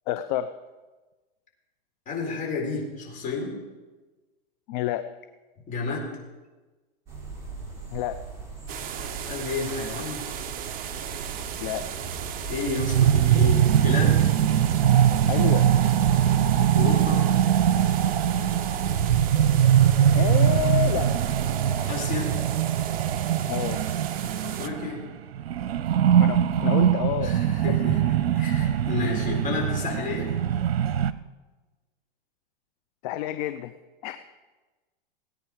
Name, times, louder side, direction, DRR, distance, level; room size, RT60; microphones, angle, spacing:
voice 1, 0.1-0.5 4.7-5.1 7.9-8.2 11.6-11.9 15.3-15.7 20.1-21.1 21.8-21.9 23.5-23.8 26.2-27.3 33.0-33.7 34.0-34.2, left 12 dB, 45° left, 10 dB, 0.7 m, -29 dB
voice 2, 2.1-3.5 5.7-6.1 9.2-10.3 12.5-14.3 16.7-17.2 21.9-22.3 24.4-25.0 27.2-28.0 28.3-30.3, left 3 dB, 25° left, -1 dB, 4.4 m, -30 dB
sound 1, 7.1-21.3, right 4 dB, 10° right, 3.7 m, -37 dB
sound 2, 8.7-24.7, right 9 dB, 30° right, 0.9 m, -37 dB
sound 3, 12.7-25.1 25.3-31.1, right 10 dB, 80° right, 0.8 m, -22 dB
18.0 x 9.6 x 4.9 m, 1.2 s
hypercardioid pair, 130°, 31 cm